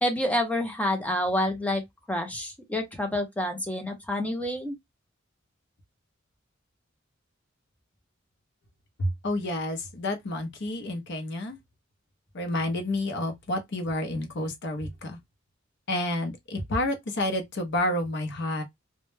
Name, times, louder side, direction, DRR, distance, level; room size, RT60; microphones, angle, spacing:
voice 1, 0.0-1.8 2.1-4.8, left 1 dB, 5° left, 0.5 m, -28 dB
voice 2, 9.0-11.6 12.3-15.2 15.9-18.6, left 1 dB, 60° left, 0.6 m, -29 dB
2.1 x 2.0 x 3.1 m
head